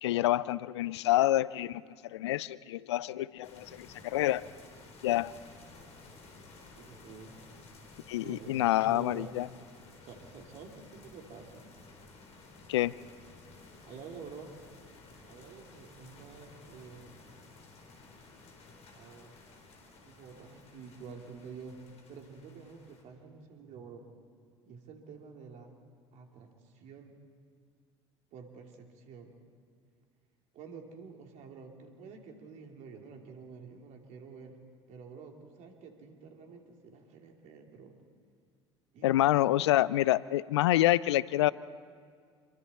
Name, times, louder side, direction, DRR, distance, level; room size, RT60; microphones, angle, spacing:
voice 1, 0.0-1.8 2.1-4.5 5.0-5.3 8.1-9.5 12.7-12.9 39.0-41.5, left 15 dB, 70° left, 20 dB, 0.4 m, -27 dB
sound 1, 3.4-23.0, left 3 dB, 45° left, 4.1 m, -54 dB
voice 2, 6.8-7.4 8.2-9.4 10.0-11.7 13.8-14.6 15.3-17.2 18.9-19.3 20.0-24.0 24.6-25.8 26.1-27.1 28.3-29.4 30.5-34.6 34.9-38.0 38.9-39.7, right 5 dB, 55° right, 2 dB, 3.0 m, -49 dB
27.0 x 22.5 x 4.2 m, 2.1 s
figure-of-eight pair, 65°, 15 cm